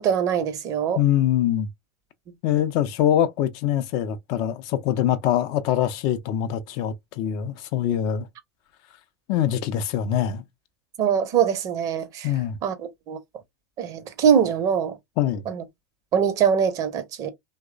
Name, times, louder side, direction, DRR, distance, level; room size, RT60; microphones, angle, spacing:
voice 1, 0.0-1.0 11.0-12.3 12.6-12.7 13.1-13.2 13.8-15.0 15.5-15.6 16.1-17.3, right 8 dB, 45° right, 0.6 m, -22 dB
voice 2, 1.0-1.7 2.4-8.3 9.3-10.4 12.2-12.6 15.2-15.5, left 10 dB, 50° left, 0.4 m, -23 dB
2.9 x 2.0 x 2.3 m
figure-of-eight pair, 80°, 8 cm